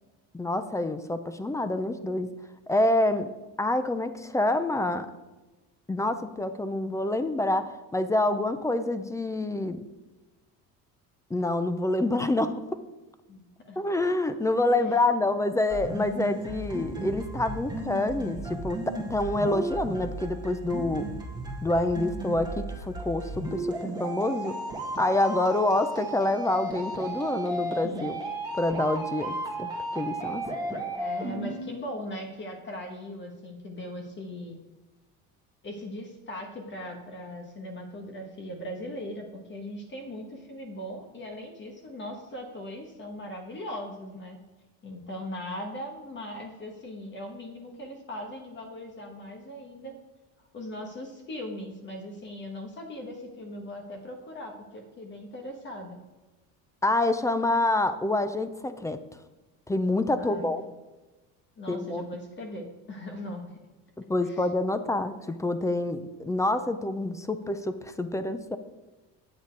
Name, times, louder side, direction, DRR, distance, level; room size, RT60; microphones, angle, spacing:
voice 1, 0.3-2.3 2.7-3.3 3.6-5.1 5.9-9.8 11.3-12.8 13.8-21.0 21.6-24.5 25.0-28.2 28.5-30.4 56.8-59.0 59.7-60.6 61.7-62.0 64.1-68.6, left 2 dB, 10° left, 11 dB, 0.4 m, -27 dB
voice 2, 13.3-13.8 14.8-15.1 30.7-34.6 35.6-44.4 44.8-49.9 50.5-56.0 60.2-60.7 61.6-63.6 64.2-64.5, left 1 dB, 30° left, 2 dB, 1.3 m, -39 dB
sound 1, 15.7-31.7, right 2 dB, 10° right, 1.8 m, -34 dB
8.6 x 7.2 x 4.6 m, 1.1 s
cardioid pair, 130°, 35 cm